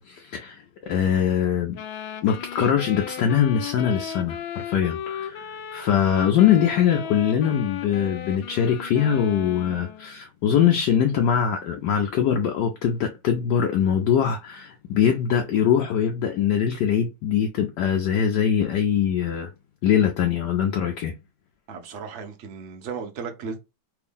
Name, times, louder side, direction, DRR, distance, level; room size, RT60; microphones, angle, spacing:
voice 1, 0.0-1.8 2.2-19.5 19.8-21.1, left 8 dB, 70° left, 1.1 m, -22 dB
sound 1, 1.7-10.1, left 9 dB, 85° left, 1.4 m, -35 dB
voice 2, 21.7-23.6, right 5 dB, 55° right, 0.8 m, -35 dB
3.5 x 2.6 x 3.5 m
omnidirectional pair, 2.1 m